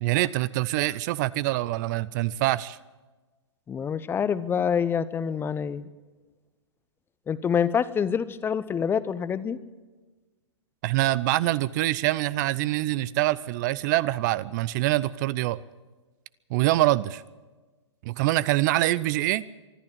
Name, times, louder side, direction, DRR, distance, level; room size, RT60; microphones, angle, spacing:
voice 1, 0.0-2.8 10.8-15.6 16.5-17.2 18.0-19.4, right 17 dB, 40° right, 20 dB, 0.6 m, -25 dB
voice 2, 3.7-5.9 7.3-9.6, left 7 dB, 15° left, 16 dB, 0.7 m, -26 dB
24.5 x 12.0 x 8.9 m, 1.3 s
hypercardioid pair, 120°, 15 cm